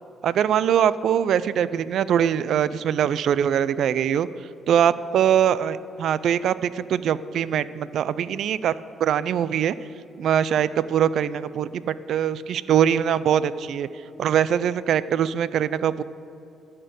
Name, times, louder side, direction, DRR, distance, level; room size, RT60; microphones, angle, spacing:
voice 1, 0.2-4.3 4.7-8.7 9.0-9.7 10.2-13.9 14.2-16.0, right 9 dB, 70° right, 17 dB, 0.3 m, -22 dB
11.5 x 4.4 x 7.7 m, 2.8 s
cardioid pair, 90°, 0 cm